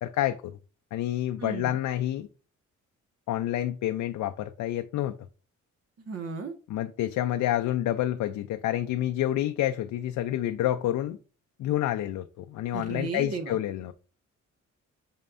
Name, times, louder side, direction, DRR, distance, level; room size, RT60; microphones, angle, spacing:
voice 1, 0.0-0.6 0.9-2.3 3.3-5.2 6.7-11.2 11.6-13.9, left 13 dB, 75° left, 0.6 m, -28 dB
voice 2, 1.4-1.8 6.0-6.5 12.7-13.6, right 4 dB, 55° right, 1.4 m, -35 dB
6.6 x 5.5 x 2.6 m
cardioid pair, 90°, 30 cm